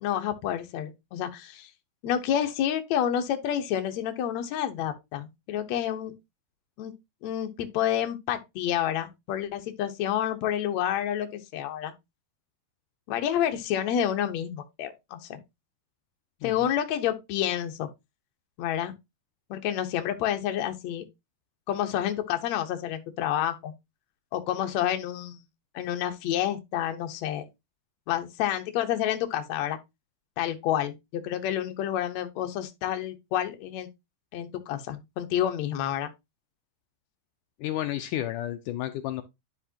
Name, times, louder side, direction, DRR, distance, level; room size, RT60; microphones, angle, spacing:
voice 1, 0.0-1.7 2.0-6.1 6.8-6.9 7.2-11.9 13.1-15.4 16.4-17.9 18.6-18.9 19.5-21.0 21.7-23.7 24.3-25.4 25.7-27.4 28.1-29.8 30.4-33.9 34.3-36.1, left 10 dB, 70° left, 1.7 m, -29 dB
voice 2, 37.6-39.2, left 13 dB, 85° left, 1.8 m, -31 dB
10.5 x 5.5 x 2.8 m
omnidirectional pair, 4.6 m